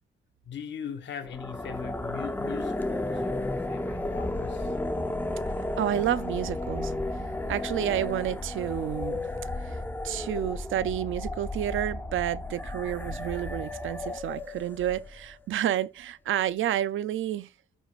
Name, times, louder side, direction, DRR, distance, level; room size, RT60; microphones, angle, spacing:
voice 1, 0.4-4.8, left 8 dB, 60° left, 1.4 m, -40 dB
sound 1, 1.2-15.4, left 2 dB, 10° left, 0.7 m, -33 dB
voice 2, 5.8-6.9 7.5-9.2 9.6-9.8 10.0-17.5, right 11 dB, 75° right, 0.5 m, -30 dB
14.0 x 4.9 x 2.4 m
wide cardioid pair, 145°, 21 cm